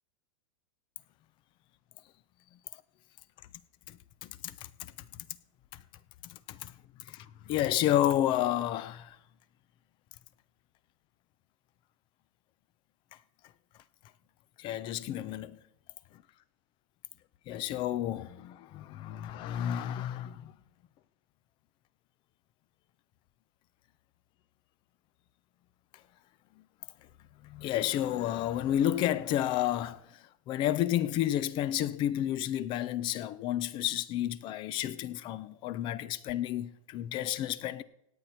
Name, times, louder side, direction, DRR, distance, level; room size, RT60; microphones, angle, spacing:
voice 1, 3.9-4.5 4.8-4.9 6.3-6.7 7.1-9.2 14.6-15.6 17.5-20.5 27.4-30.0 30.5-37.8, left 12 dB, 30° left, 0.6 m, -31 dB
17.0 x 9.3 x 4.4 m
supercardioid pair, 155°, 16 cm